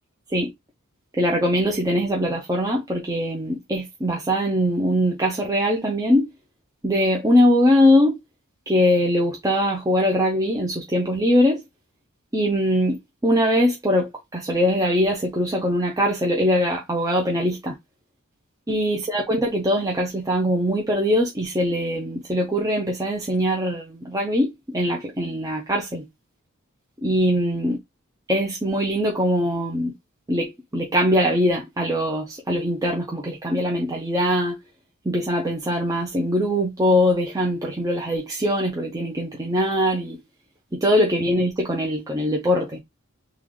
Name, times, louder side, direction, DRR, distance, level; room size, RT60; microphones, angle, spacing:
voice 1, 1.2-6.3 6.8-8.2 8.7-11.6 12.3-17.7 18.7-26.1 27.0-27.8 28.3-29.9 30.3-34.6 35.1-40.2 40.7-42.8, equal, 15° right, 0.6 m, -22 dB
3.8 x 2.3 x 3.1 m
head